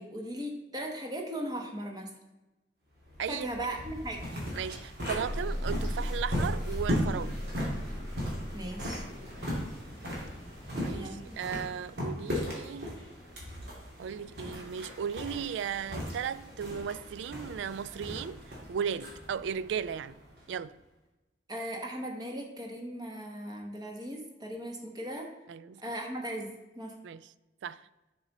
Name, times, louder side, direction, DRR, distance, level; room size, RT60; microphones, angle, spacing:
voice 1, 0.0-2.1 3.3-4.2 8.5-9.0 10.9-11.4 21.5-25.3 25.8-26.9, right 1 dB, 20° right, 1.1 m, -38 dB
sound 1, 3.0-20.7, equal, 60° right, 2.5 m, -38 dB
voice 2, 3.2-3.7 4.5-7.4 10.8-13.0 14.0-20.2 20.5-20.8 25.5-25.8 27.0-27.3 27.6-27.8, right 7 dB, 80° right, 0.3 m, -36 dB
sound 2, 5.0-9.6, equal, 35° left, 0.8 m, -36 dB
sound 3, 5.2-10.7, left 1 dB, 45° right, 2.6 m, -48 dB
7.1 x 6.1 x 4.0 m
head